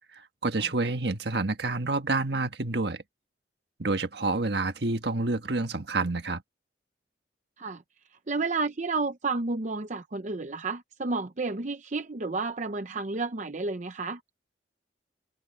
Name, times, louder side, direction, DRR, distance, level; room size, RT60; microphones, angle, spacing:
voice 1, 0.4-3.0 3.8-6.4, right 3 dB, 65° right, 1.6 m, -28 dB
voice 2, 8.3-14.2, right 3 dB, 45° right, 0.7 m, -31 dB
head